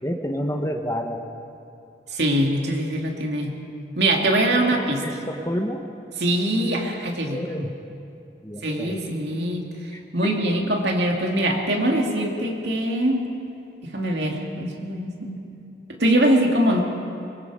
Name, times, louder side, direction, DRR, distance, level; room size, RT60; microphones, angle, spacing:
voice 1, 0.0-1.2 5.0-5.8 7.3-7.7 8.4-9.0 9.9-10.5, equal, 15° left, 4 dB, 1.1 m, -29 dB
voice 2, 2.1-3.6 4.0-5.0 6.2-7.4 8.6-9.6 10.1-13.2 13.8-15.4 15.9-16.8, right 1 dB, 65° right, 1 dB, 2.6 m, -22 dB
23.5 x 23.0 x 5.0 m, 2.6 s
head